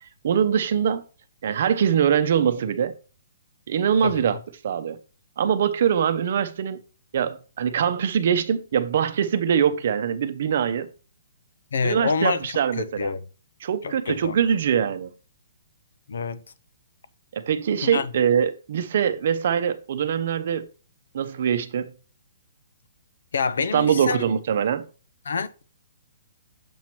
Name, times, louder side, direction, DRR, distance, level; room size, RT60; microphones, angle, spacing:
voice 1, 0.0-1.0 1.4-2.9 3.7-4.4 4.6-5.0 5.4-6.8 7.1-10.9 11.8-13.1 13.6-15.1 17.3-20.7 21.1-21.9 23.7-24.8, right 8 dB, 55° right, 0.7 m, -23 dB
voice 2, 11.7-12.4 12.8-13.2 13.8-14.3 16.1-16.4 17.8-18.1 23.3-24.3 25.3-25.6, left 5 dB, 80° left, 0.6 m, -26 dB
7.1 x 3.0 x 5.9 m
hypercardioid pair, 160°, 0 cm